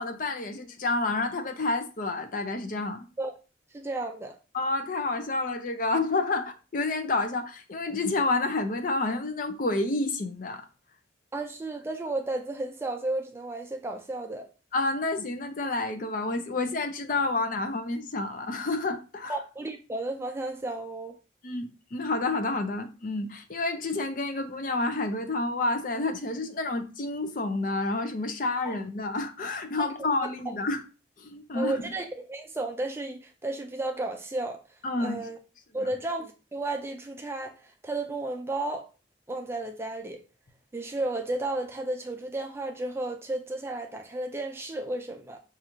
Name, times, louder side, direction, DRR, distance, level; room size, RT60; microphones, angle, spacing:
voice 1, 0.0-3.0 4.5-10.6 14.7-19.4 21.4-30.8 31.2-31.7 34.8-35.2 35.8-35.9, left 2 dB, 45° left, 0.5 m, -29 dB
voice 2, 3.7-4.4 11.3-14.5 19.3-21.2 28.7-28.8 30.5-30.6 31.5-34.6 35.0-35.4 35.7-38.9 39.3-40.2 40.7-45.4, right 2 dB, 15° right, 0.3 m, -33 dB
5.4 x 2.4 x 2.9 m
head